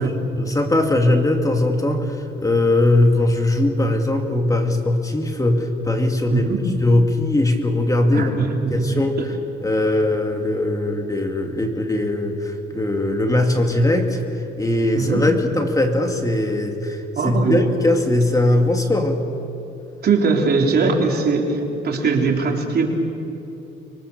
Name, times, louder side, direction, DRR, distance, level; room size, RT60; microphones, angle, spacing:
voice 1, 0.0-6.5 6.8-8.3 8.7-9.2 9.6-19.2, left 1 dB, 15° left, 3 dB, 2.6 m, -20 dB
voice 2, 6.3-6.6 8.1-9.3 14.9-15.2 17.2-17.6 20.0-22.8, right 4 dB, 55° right, 1 dB, 3.8 m, -21 dB
25.0 x 23.5 x 6.9 m, 2.9 s
cardioid pair, 90°, 20 cm